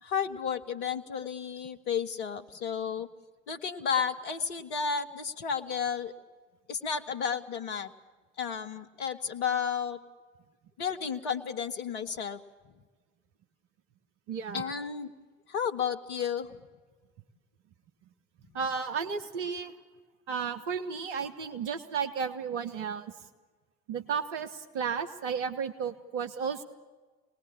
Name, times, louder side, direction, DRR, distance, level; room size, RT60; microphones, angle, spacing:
voice 1, 0.0-3.1 3.5-6.1 6.7-7.9 8.4-10.0 10.8-12.4 14.5-15.1 15.5-16.6, left 7 dB, 65° left, 7 dB, 1.4 m, -32 dB
voice 2, 14.3-14.7 18.5-19.7 20.3-23.1 23.9-26.6, right 6 dB, 70° right, 9 dB, 1.4 m, -33 dB
25.5 x 19.5 x 8.7 m, 1.3 s
figure-of-eight pair, 55°, 37 cm